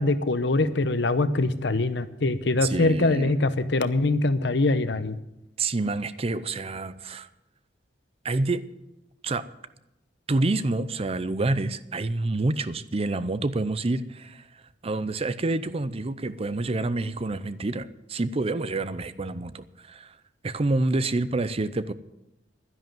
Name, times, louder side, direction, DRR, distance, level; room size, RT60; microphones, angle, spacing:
voice 1, 0.0-5.2, left 2 dB, 70° left, 12 dB, 0.9 m, -23 dB
voice 2, 2.6-3.3 5.6-7.3 8.2-8.6 9.2-9.5 10.3-20.2 20.4-21.9, right 2 dB, 35° right, 14 dB, 0.6 m, -28 dB
11.5 x 10.5 x 7.5 m, 0.93 s
head